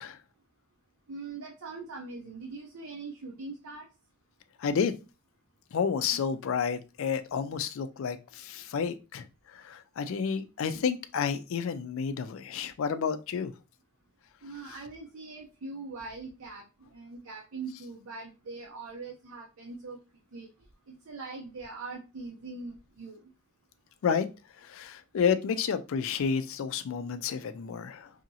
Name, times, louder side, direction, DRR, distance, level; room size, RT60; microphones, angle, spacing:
voice 1, 1.1-3.9 6.1-6.2 14.4-20.0 20.3-20.5 20.9-23.2, right 3 dB, 90° right, 0.6 m, -42 dB
voice 2, 4.6-4.9 5.7-13.5 14.7-14.8 24.0-24.3 24.6-28.1, left 6 dB, 70° left, 0.4 m, -30 dB
2.8 x 2.7 x 2.7 m
head